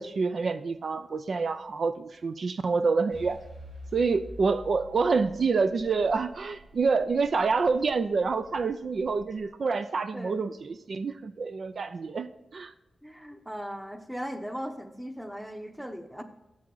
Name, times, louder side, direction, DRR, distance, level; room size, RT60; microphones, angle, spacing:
voice 1, 0.0-3.4 3.9-12.7, right 4 dB, 60° right, 11 dB, 0.4 m, -27 dB
sound 1, 3.1-9.5, equal, 80° right, 2.2 m, -49 dB
voice 2, 10.1-10.4 13.0-16.2, equal, 5° right, 7 dB, 0.9 m, -38 dB
7.4 x 7.3 x 3.9 m, 1.0 s
cardioid pair, 75°, 0 cm